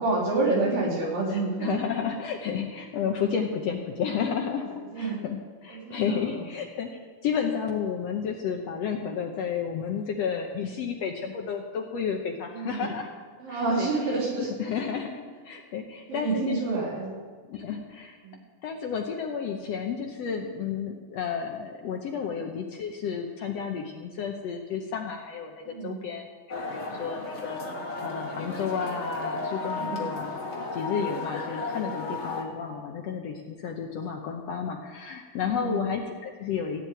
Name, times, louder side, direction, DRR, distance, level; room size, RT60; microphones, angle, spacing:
voice 1, 0.0-1.8 4.5-5.2 5.7-6.4 12.5-12.9 13.4-14.5 16.1-17.1 18.2-18.4 22.3-22.5 25.7-26.0 29.6-30.1 35.5-35.9, right 3 dB, 70° right, -3 dB, 5.0 m, -29 dB
voice 2, 1.6-13.1 13.5-13.9 14.6-15.2 15.4-16.6 17.5-18.2 18.6-27.6 28.0-30.3 30.7-36.8, left 7 dB, 75° left, 2 dB, 1.5 m, -32 dB
sound 1, 26.5-32.4, left 3 dB, 40° left, 0.9 m, -34 dB
16.0 x 7.4 x 9.1 m, 1.5 s
omnidirectional pair, 4.1 m